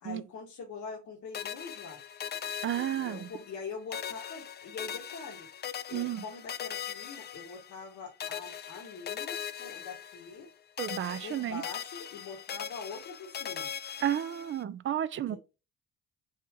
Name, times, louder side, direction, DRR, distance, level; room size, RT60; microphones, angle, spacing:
voice 1, 0.0-2.0 2.8-5.5 5.9-10.5 11.2-13.7 15.1-15.4, left 5 dB, 70° left, 1.5 m, -44 dB
sound 1, 1.3-3.6 3.9-7.9 8.2-10.5 10.8-14.6, left 9 dB, 35° left, 0.4 m, -40 dB
voice 2, 2.6-3.3 5.9-6.2 10.8-11.6 14.0-15.4, right 11 dB, 40° right, 0.5 m, -32 dB
4.2 x 2.5 x 4.8 m
cardioid pair, 90°, 30 cm